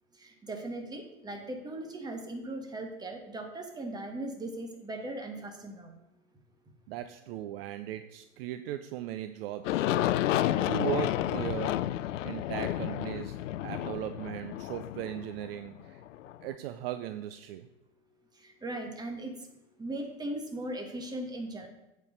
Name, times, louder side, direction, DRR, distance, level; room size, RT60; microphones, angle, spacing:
voice 1, 0.5-5.9 18.6-19.3 19.8-21.7, right 1 dB, 10° right, 3 dB, 1.4 m, -38 dB
voice 2, 6.9-10.1 10.6-11.9 12.2-16.0 16.4-17.7, right 13 dB, 50° right, 10 dB, 0.5 m, -38 dB
Aircraft, 9.6-16.3, left 13 dB, 75° left, 0.5 m, -31 dB
8.1 x 4.6 x 6.6 m, 0.93 s
hypercardioid pair, 125°, 37 cm